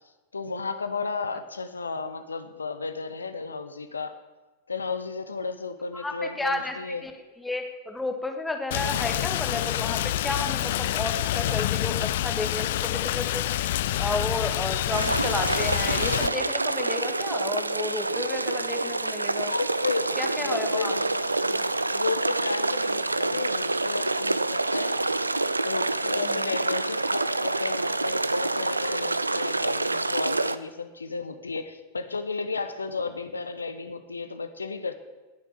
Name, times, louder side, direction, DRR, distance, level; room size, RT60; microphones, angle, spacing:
voice 1, 0.3-4.2 4.7-7.0 19.4-21.6 21.9-25.0 25.6-34.9, left 4 dB, 75° left, 10 dB, 0.9 m, -33 dB
voice 2, 5.9-6.7 7.0-7.1 7.4-13.5 14.0-19.5 20.2-20.9 26.2-26.5, left 2 dB, 5° left, 4 dB, 1.7 m, -32 dB
Rain, 8.7-16.3, left 13 dB, 55° left, 0.5 m, -27 dB
sound 1, 14.9-30.6, right 2 dB, 80° right, 0.5 m, -27 dB
20.0 x 7.2 x 7.3 m, 1.2 s
figure-of-eight pair, 90°, 0 cm